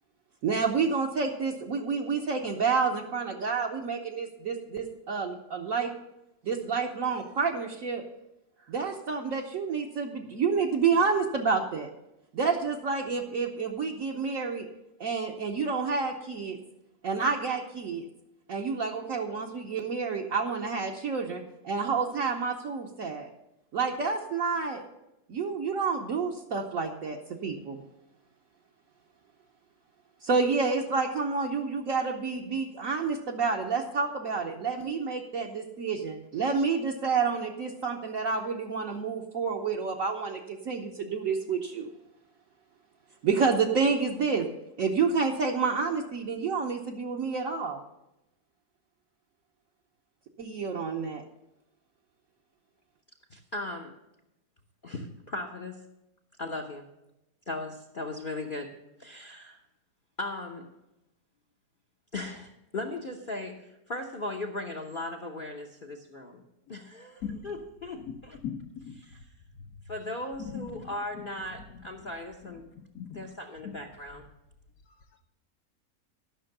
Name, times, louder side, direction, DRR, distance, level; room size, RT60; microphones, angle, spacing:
voice 1, 0.4-5.9 6.4-8.0 8.7-11.9 12.3-14.7 15.0-16.6 17.0-18.0 18.5-23.3 23.7-24.8 25.3-27.8 30.2-41.9 43.2-44.5 44.8-47.8 50.4-51.2, right 5 dB, 55° right, -1 dB, 1.2 m, -29 dB
voice 2, 53.3-54.0 54.8-55.8 56.4-56.9 57.5-59.6 60.2-60.7 62.1-66.4 66.7-68.4 69.9-72.7 73.2-74.3, left 2 dB, 40° left, 3 dB, 0.8 m, -37 dB
voice 3, 68.4-69.0 69.6-69.7 70.4-71.3 71.7-71.9 72.7-73.3 73.6-73.8 74.1-74.2 74.9-75.2, left 7 dB, 60° left, 6 dB, 1.2 m, -40 dB
12.5 x 6.2 x 6.6 m, 0.89 s
omnidirectional pair, 1.8 m